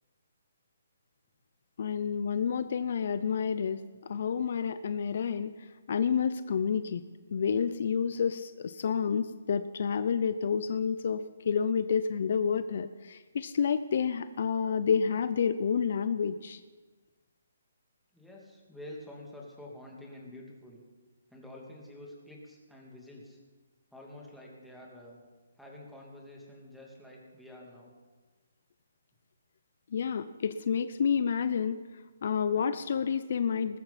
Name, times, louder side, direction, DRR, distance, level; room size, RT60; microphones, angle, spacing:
voice 1, 1.8-7.0 7.3-16.6 29.9-31.8 32.2-33.8, left 6 dB, 55° left, 13 dB, 0.6 m, -29 dB
voice 2, 18.1-20.8 21.3-23.4 23.9-25.2 25.6-27.9, left 1 dB, ahead, -3 dB, 2.7 m, -48 dB
20.0 x 14.0 x 4.3 m, 1.3 s
hypercardioid pair, 155°, 0 cm